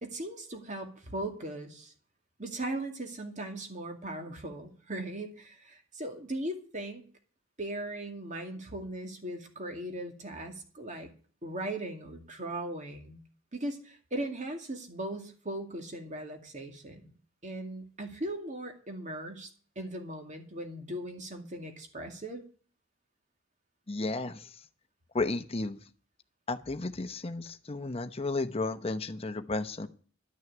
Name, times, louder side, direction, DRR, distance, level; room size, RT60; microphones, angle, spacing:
voice 1, 0.0-1.9 2.4-7.0 7.6-11.1 11.4-13.2 13.5-17.1 17.4-19.5 19.8-22.4, right 1 dB, 35° right, 4 dB, 2.3 m, -38 dB
voice 2, 23.9-24.5 25.1-25.8 26.5-29.9, left 3 dB, 30° left, 9 dB, 0.9 m, -33 dB
12.0 x 6.5 x 9.3 m, 0.42 s
head